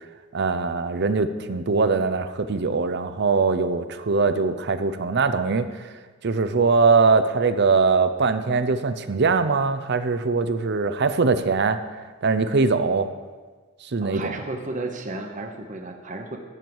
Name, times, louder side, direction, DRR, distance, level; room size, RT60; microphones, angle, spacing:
voice 1, 0.3-5.7 6.2-11.8 12.2-13.1 13.8-14.3, right 4 dB, 55° right, 11 dB, 0.6 m, -22 dB
voice 2, 14.0-16.4, right 2 dB, 40° right, 4 dB, 1.0 m, -33 dB
13.5 x 4.6 x 7.1 m, 1.4 s
head